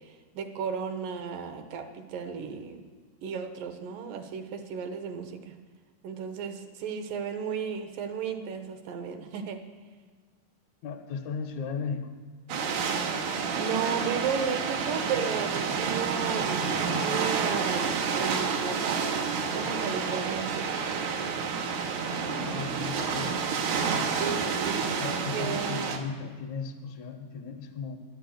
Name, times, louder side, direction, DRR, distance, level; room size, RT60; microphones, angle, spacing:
voice 1, 0.0-2.8 3.2-5.6 6.0-9.6 13.6-16.7 17.0-19.1 19.5-20.8 24.1-24.9 25.3-25.9, right 6 dB, 75° right, 7 dB, 2.4 m, -34 dB
voice 2, 10.8-12.2 22.4-23.3 24.8-28.0, left 5 dB, 65° left, 3 dB, 1.9 m, -36 dB
sound 1, 12.5-26.0, right 5 dB, 90° right, 3.0 m, -29 dB
11.0 x 9.6 x 7.8 m, 1.5 s
omnidirectional pair, 4.2 m